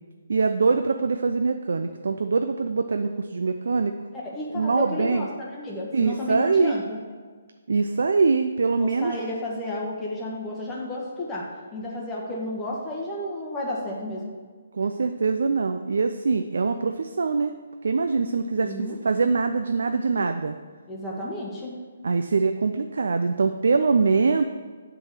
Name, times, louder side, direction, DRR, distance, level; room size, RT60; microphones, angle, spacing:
voice 1, 0.3-3.9 4.5-5.3 5.9-6.8 7.7-9.2 14.7-17.5 17.8-20.5 22.0-24.4, right 4 dB, 75° right, 7 dB, 0.4 m, -23 dB
voice 2, 4.2-7.0 8.8-14.2 18.6-19.0 20.9-21.7, left 1 dB, 15° left, -4 dB, 1.3 m, -32 dB
7.8 x 3.8 x 6.6 m, 1.5 s
hypercardioid pair, 155°, 0 cm